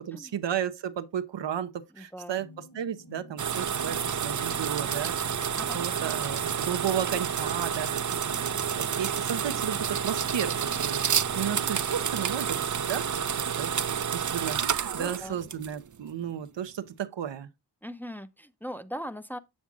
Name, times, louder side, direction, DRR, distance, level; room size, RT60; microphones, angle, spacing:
voice 1, 0.1-2.5 2.7-5.4 5.7-8.2 8.7-17.5, right 9 dB, 85° right, 0.7 m, -34 dB
voice 2, 1.9-2.4 5.6-5.8 14.9-15.4 17.8-19.4, equal, 5° left, 0.6 m, -39 dB
sound 1, 2.4-11.8, equal, 65° left, 5.0 m, -49 dB
sound 2, 3.4-15.9, right 8 dB, 45° right, 0.5 m, -29 dB
7.5 x 7.1 x 2.4 m
cardioid pair, 40°, 43 cm